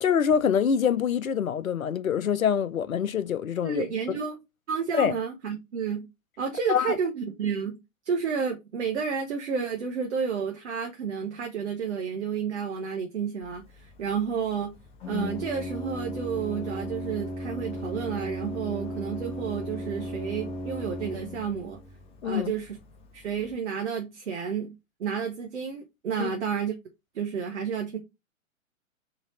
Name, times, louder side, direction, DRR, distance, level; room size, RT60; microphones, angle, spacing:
voice 1, 0.0-3.8 4.9-5.1 6.7-7.0 22.2-22.5 26.2-26.3, left 8 dB, 80° left, 0.6 m, -25 dB
voice 2, 3.6-4.4 4.7-6.1 6.4-7.8 8.0-14.7 15.1-21.8 22.2-22.8 23.1-24.7 25.0-26.7 27.1-28.0, right 6 dB, 55° right, 1.1 m, -31 dB
Organ, 13.4-23.6, equal, 15° left, 0.7 m, -37 dB
4.0 x 3.4 x 3.9 m
figure-of-eight pair, 110°, 41 cm